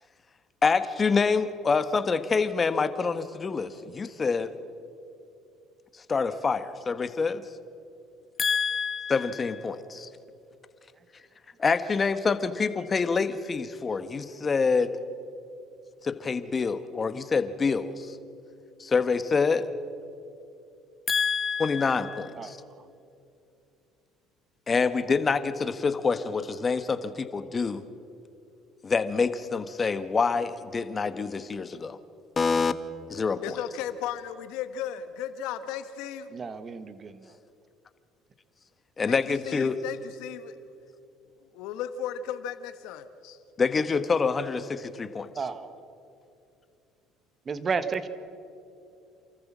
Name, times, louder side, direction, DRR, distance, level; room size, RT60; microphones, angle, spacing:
voice 1, 0.6-4.5 6.1-7.4 8.4-10.1 11.6-15.0 16.0-18.2 18.8-19.7 21.1-22.6 24.7-27.8 28.8-32.0 32.4-32.7 33.1-33.6 39.0-39.7 43.6-45.3, left 5 dB, 30° left, 11 dB, 1.2 m, -26 dB
voice 2, 33.4-36.3 39.1-40.6 41.5-43.4, left 9 dB, 75° left, 11 dB, 1.3 m, -35 dB
voice 3, 36.3-37.2 45.4-45.7 47.5-48.1, right 5 dB, 35° right, 12 dB, 1.3 m, -32 dB
28.0 x 14.0 x 7.4 m, 2.6 s
supercardioid pair, 90°, 0 cm